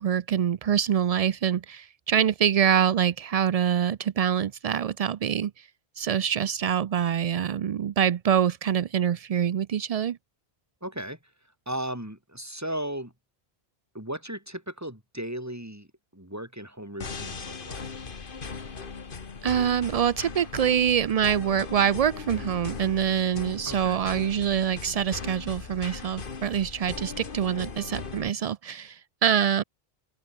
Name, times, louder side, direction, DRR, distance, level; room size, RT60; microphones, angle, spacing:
voice 1, 0.0-5.7 6.0-10.2 19.4-29.6, right 9 dB, 55° right, 0.4 m, -25 dB
voice 2, 10.8-11.2 11.7-13.1 13.9-17.9 23.6-24.0, right 1 dB, 15° right, 4.1 m, -36 dB
sound 1, 17.0-28.3, left 5 dB, 55° left, 1.6 m, -38 dB
open air
omnidirectional pair, 1.1 m